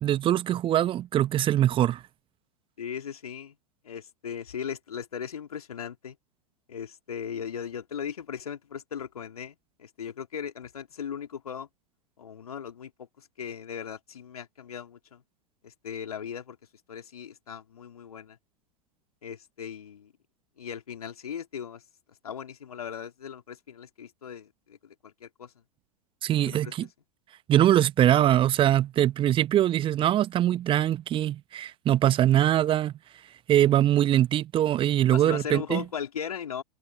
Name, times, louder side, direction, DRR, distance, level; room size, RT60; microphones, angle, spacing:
voice 1, 0.0-2.0 26.2-26.9 27.5-32.9 33.5-35.8, right 12 dB, 25° right, 1.4 m, -22 dB
voice 2, 2.8-3.6 3.8-6.2 6.7-11.7 12.2-15.2 15.6-16.6 16.9-18.4 19.2-20.1 20.6-21.8 22.1-25.6 26.4-26.9 35.1-36.6, left 8 dB, 70° left, 3.2 m, -38 dB
figure-of-eight pair, 95°, 20 cm